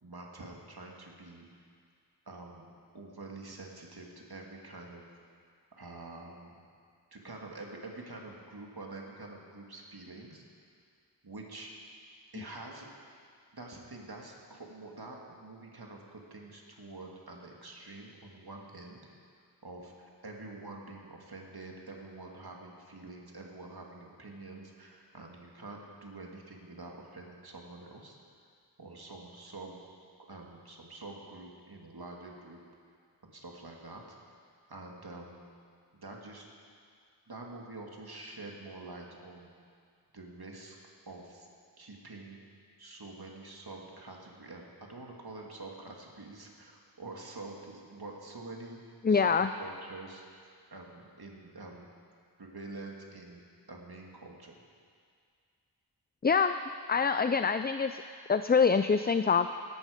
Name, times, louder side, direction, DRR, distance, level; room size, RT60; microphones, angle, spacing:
voice 1, 0.0-1.5 2.3-5.1 5.7-6.6 7.1-10.4 11.2-11.7 12.3-12.9 13.5-19.0 19.6-28.2 28.8-29.8 30.3-32.6 33.2-34.0 34.7-35.4 35.9-36.5 37.3-39.5 40.1-40.8 41.1-41.5 41.8-42.4 42.8-51.9 52.4-54.6, right 2 dB, 60° right, 0 dB, 2.2 m, -46 dB
voice 2, 49.0-49.5 56.2-56.6 56.9-58.0 58.3-59.5, left 5 dB, 25° left, 10 dB, 0.4 m, -25 dB
16.5 x 12.0 x 5.1 m, 2.2 s
wide cardioid pair, 50°, 42 cm